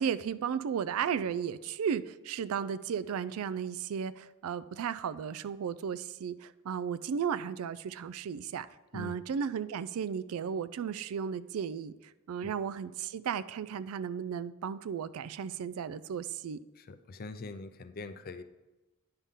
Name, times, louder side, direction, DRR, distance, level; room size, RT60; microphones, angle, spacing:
voice 1, 0.0-8.7 8.9-16.6, right 7 dB, 75° right, 15 dB, 0.3 m, -34 dB
voice 2, 16.8-18.4, left 3 dB, 40° left, 10 dB, 0.4 m, -43 dB
9.7 x 5.6 x 3.6 m, 1.1 s
head